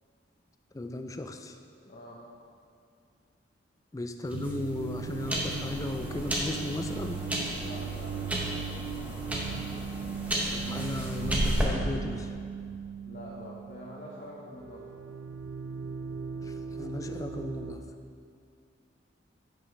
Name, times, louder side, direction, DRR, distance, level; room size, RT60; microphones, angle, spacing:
voice 1, 0.7-1.6 3.9-7.2 10.5-12.3 16.4-17.8, left 2 dB, 15° left, 7 dB, 0.3 m, -36 dB
voice 2, 1.9-2.2 7.5-9.6 13.0-14.8, equal, 45° left, -6 dB, 1.0 m, -46 dB
sound 1, 4.3-11.6, equal, 10° right, 0.8 m, -33 dB
sound 2, 4.3-14.3 14.5-17.8, right 6 dB, 80° right, 0.5 m, -38 dB
9.4 x 6.1 x 3.3 m, 2.3 s
head